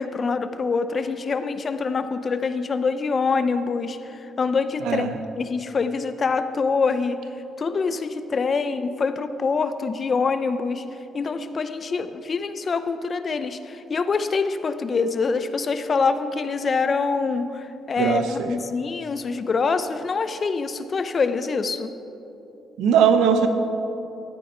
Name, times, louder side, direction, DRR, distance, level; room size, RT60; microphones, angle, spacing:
voice 1, 0.0-5.1 5.3-7.2 7.6-10.8 11.1-21.9, left 4 dB, 40° left, 10 dB, 0.6 m, -25 dB
voice 2, 18.0-18.5 22.8-23.5, right 7 dB, 90° right, 8 dB, 0.8 m, -19 dB
13.5 x 9.4 x 4.4 m, 2.9 s
cardioid pair, 90°, 0 cm